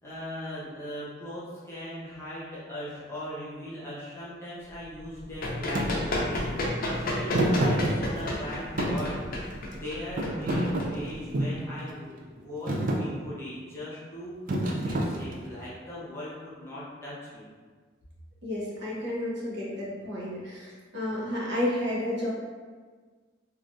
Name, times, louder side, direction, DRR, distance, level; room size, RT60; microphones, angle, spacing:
voice 1, 0.0-12.1 12.4-17.4, left 1 dB, 15° left, -10 dB, 0.8 m, -39 dB
Run, 5.0-11.5, left 1 dB, 50° left, 0.5 m, -31 dB
Thump thud, 5.7-5.9 7.3-8.4 8.8-9.8 10.2-11.6 12.2-12.4 12.7-13.0 14.5-15.6, right 1 dB, 45° right, 0.4 m, -27 dB
voice 2, 18.4-22.3, left 1 dB, 60° right, -6 dB, 0.9 m, -31 dB
3.2 x 2.4 x 2.5 m, 1.5 s
head